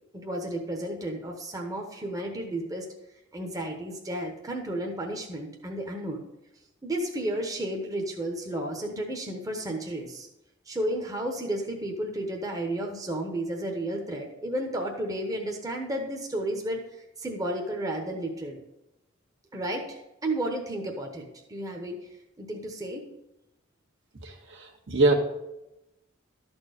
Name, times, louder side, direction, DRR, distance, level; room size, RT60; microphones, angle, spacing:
voice 1, 0.1-2.8 3.3-6.2 6.8-10.3 10.7-18.6 19.5-22.1 22.4-23.0, right 1 dB, 20° right, 1 dB, 1.0 m, -32 dB
voice 2, 24.2-25.1, right 2 dB, 65° right, 1 dB, 1.5 m, -24 dB
12.5 x 4.4 x 6.6 m, 0.94 s
head